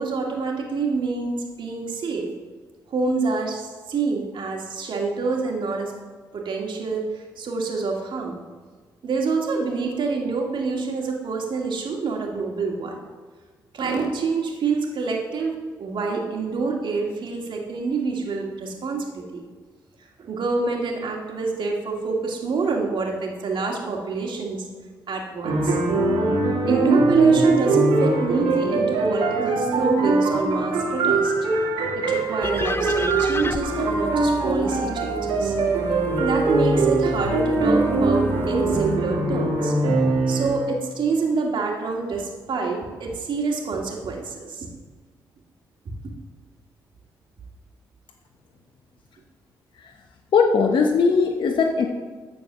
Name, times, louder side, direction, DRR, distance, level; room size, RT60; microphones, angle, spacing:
voice 1, 0.0-2.3 2.9-5.9 6.3-8.4 9.0-13.0 13.7-19.4 20.2-24.7 25.1-25.8 26.7-31.3 31.9-35.6 36.2-39.7 40.3-44.7, right 4 dB, 65° right, 0 dB, 2.2 m, -26 dB
sound 1, 25.4-40.6, right 3 dB, 85° right, 2.3 m, -22 dB
sound 2, 32.4-39.0, left 2 dB, 25° left, 0.7 m, -33 dB
voice 2, 50.3-51.9, left 5 dB, 65° left, 2 dB, 0.9 m, -19 dB
12.5 x 4.6 x 6.7 m, 1.4 s
supercardioid pair, 50°, 9 cm